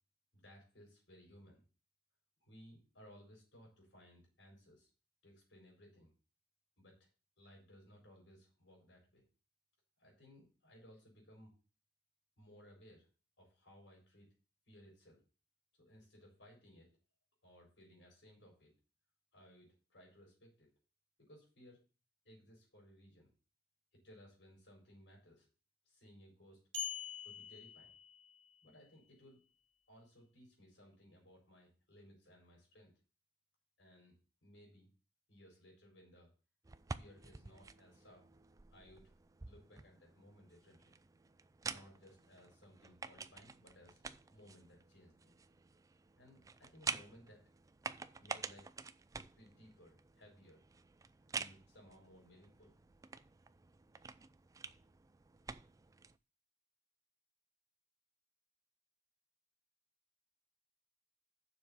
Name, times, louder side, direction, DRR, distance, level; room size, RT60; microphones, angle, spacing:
voice 1, 0.3-1.6 2.4-4.9 5.2-6.1 6.8-7.1 7.4-9.2 10.0-11.5 12.4-13.1 13.4-14.3 14.7-15.2 15.8-16.9 17.4-18.7 19.3-20.7 21.2-21.8 22.2-23.3 23.9-25.5 25.8-26.6 27.2-27.9 28.6-29.4 29.9-32.9 33.8-34.2 34.4-34.9 35.3-36.3 37.0-38.2 38.7-39.1 39.4-41.0 41.6-44.0 44.3-45.3 46.2-47.4 48.2-48.7 49.4-50.6 51.3-52.8, equal, 85° left, -2 dB, 4.8 m, -61 dB
sound 1, 26.7-28.6, left 6 dB, 90° right, 2.3 m, -45 dB
sound 2, 36.6-56.2, right 4 dB, 20° right, 0.4 m, -49 dB
7.2 x 6.3 x 6.9 m, 0.36 s
head